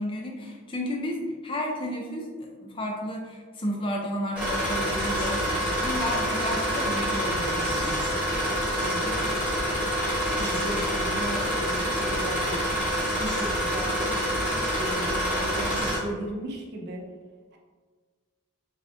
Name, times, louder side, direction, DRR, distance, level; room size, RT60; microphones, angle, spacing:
voice 1, 0.0-8.0, left 1 dB, 25° left, 0 dB, 0.3 m, -32 dB
sound 1, 4.4-16.0, equal, 5° right, 0.8 m, -27 dB
voice 2, 8.8-9.6 10.3-12.8 13.2-14.2 14.7-17.0 17.5-17.6, right 1 dB, 50° right, 0 dB, 0.4 m, -36 dB
3.3 x 2.4 x 2.5 m, 1.5 s
head